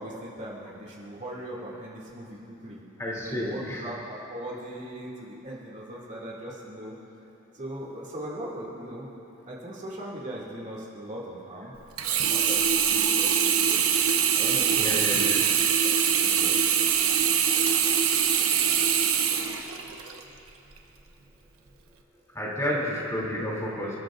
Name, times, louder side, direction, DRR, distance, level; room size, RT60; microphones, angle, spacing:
voice 1, 0.0-2.8 3.2-7.0 7.5-9.1 9.4-11.7 12.1-13.8 14.3-15.4 15.8-16.9 22.7-22.9, right 1 dB, 35° right, -5 dB, 2.4 m, -39 dB
voice 2, 3.0-3.8 13.8-14.0 14.8-15.4 22.3-24.0, left 1 dB, 15° left, -5 dB, 2.9 m, -31 dB
Sink (filling or washing), 12.0-20.2 20.8-20.9, right 8 dB, 90° right, 1.1 m, -23 dB
28.5 x 13.5 x 2.6 m, 2.8 s
head